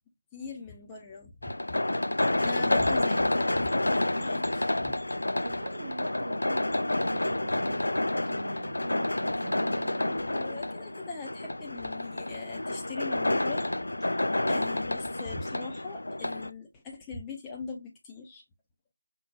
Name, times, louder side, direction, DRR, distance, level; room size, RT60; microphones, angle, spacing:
voice 1, 0.3-1.8 2.4-5.0 10.0-13.7 14.0-18.4, left 4 dB, 10° left, 0.5 m, -41 dB
sound 1, 1.4-16.5, left 1 dB, 65° left, 0.3 m, -29 dB
voice 2, 5.4-10.2, right 3 dB, 40° right, 0.5 m, -42 dB
5.3 x 2.1 x 2.3 m
figure-of-eight pair, 160°, 0 cm